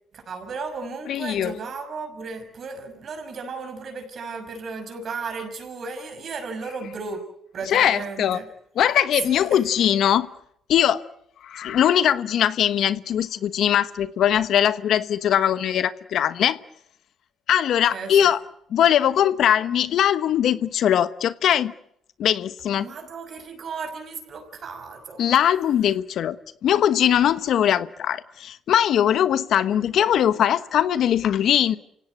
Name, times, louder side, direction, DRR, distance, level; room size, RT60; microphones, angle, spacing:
voice 1, 0.1-7.2 7.5-8.4 9.2-9.6 17.9-18.1 22.8-25.2, right 4 dB, 55° right, 6.5 m, -35 dB
voice 2, 1.1-1.5 7.7-8.4 8.8-10.3 10.7-11.0 11.4-16.6 17.5-18.4 18.7-21.7 22.2-22.9 25.2-26.4 26.6-31.8, left 10 dB, 70° left, 1.1 m, -21 dB
28.5 x 17.0 x 9.5 m
cardioid pair, 90°, 0 cm